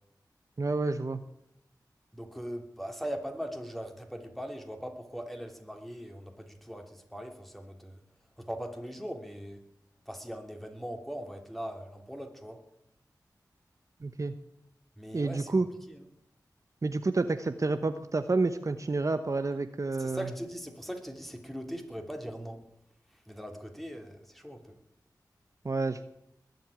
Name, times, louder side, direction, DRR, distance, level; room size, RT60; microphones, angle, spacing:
voice 1, 0.6-1.2 14.0-14.3 15.1-15.7 16.8-20.3 25.6-26.0, right 3 dB, 45° right, 9 dB, 0.9 m, -29 dB
voice 2, 2.1-8.0 8.4-9.6 10.1-12.6 15.0-15.5 15.9-16.0 20.0-22.6 23.3-24.8, equal, ahead, 4 dB, 3.0 m, -40 dB
20.5 x 7.9 x 8.9 m, 0.78 s
wide cardioid pair, 60°, 7 cm